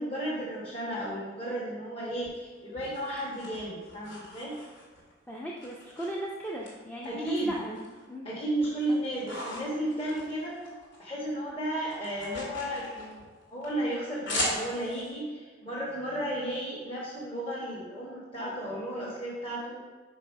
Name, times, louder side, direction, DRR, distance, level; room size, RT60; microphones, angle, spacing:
voice 1, 0.0-4.5 7.0-7.5 8.2-10.6 11.0-13.2 13.5-19.8, right 1 dB, 30° left, -8 dB, 1.3 m, -33 dB
sound 1, 2.2-5.1 5.6-6.7 7.0-8.0 8.4-11.0 11.3-15.1, left 1 dB, 70° left, 2.2 m, -38 dB
voice 2, 5.3-8.3 8.9-9.0, right 1 dB, 10° left, -3 dB, 0.5 m, -38 dB
5.5 x 5.2 x 5.2 m, 1.4 s
head